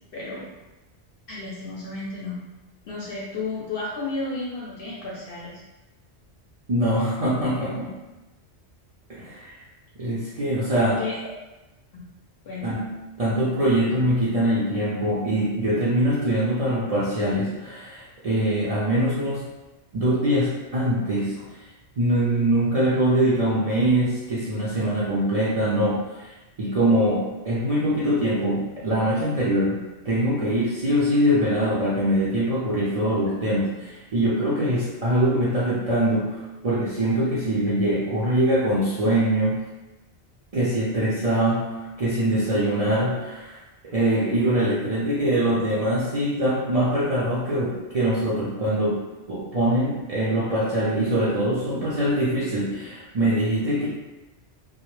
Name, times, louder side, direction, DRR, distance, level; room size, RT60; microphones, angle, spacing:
voice 1, 0.1-0.5 1.3-2.4 2.9-5.6 11.0-11.3 12.4-12.8, left 3 dB, 60° left, -5 dB, 0.7 m, -32 dB
voice 2, 6.7-7.9 9.1-9.6 10.0-11.0 12.6-12.9 13.2-19.4 19.9-21.4 22.0-26.3 26.6-39.6 40.5-43.6 43.8-49.0 49.3-53.9, right 1 dB, 55° right, -9 dB, 0.4 m, -23 dB
2.1 x 2.0 x 3.0 m, 1.1 s
omnidirectional pair, 1.2 m